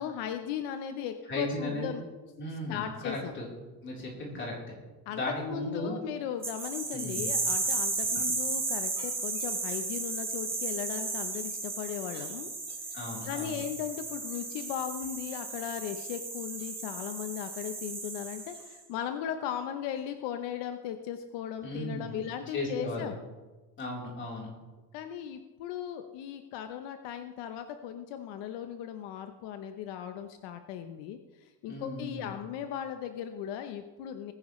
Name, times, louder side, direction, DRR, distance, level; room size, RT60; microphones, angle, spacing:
voice 1, 0.0-2.0 2.7-3.3 5.1-12.5 13.3-23.2 24.9-34.3, left 9 dB, 75° left, 7 dB, 0.9 m, -37 dB
voice 2, 1.3-1.9 2.4-3.5 3.8-4.5 5.1-6.0 6.9-7.3 8.1-8.2 12.9-13.6 21.6-22.2 22.5-23.1 23.8-24.5 31.7-32.3, left 2 dB, 25° left, -3 dB, 3.8 m, -36 dB
flushing toilet, 6.4-18.7, right 3 dB, 15° right, 2.7 m, -34 dB
21.0 x 10.0 x 3.2 m, 1.2 s
cardioid pair, 170°, 43 cm